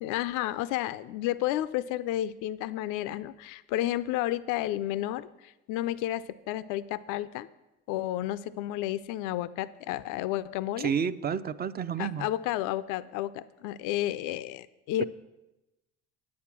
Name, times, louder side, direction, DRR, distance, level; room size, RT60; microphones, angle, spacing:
voice 1, 0.0-7.5 7.9-10.9 12.0-15.0, left 14 dB, 80° left, 15 dB, 0.5 m, -31 dB
voice 2, 10.8-12.3 15.0-15.1, right 7 dB, 30° right, 14 dB, 0.5 m, -30 dB
9.5 x 8.5 x 6.0 m, 0.98 s
supercardioid pair, 90°, 31 cm